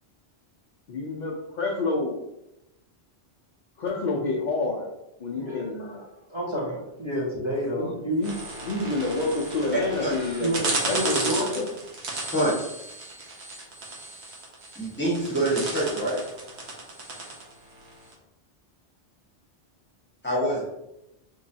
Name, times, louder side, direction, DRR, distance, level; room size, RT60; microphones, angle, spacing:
voice 1, 0.9-2.2 3.8-4.9 5.2-6.0 7.8-7.9 8.2-8.3 8.6-10.6 10.8-11.7, left 3 dB, 55° left, -3 dB, 0.6 m, -28 dB
voice 2, 5.3-5.9 6.3-8.2 10.0-11.7 12.1-12.3, equal, 25° right, -7 dB, 1.3 m, -30 dB
sound 1, 8.2-18.1, right 2 dB, 75° right, 1.1 m, -34 dB
voice 3, 12.3-12.7 14.7-16.2 20.2-20.6, right 1 dB, 10° left, -7 dB, 1.4 m, -25 dB
3.6 x 3.0 x 2.7 m, 0.90 s
omnidirectional pair, 1.1 m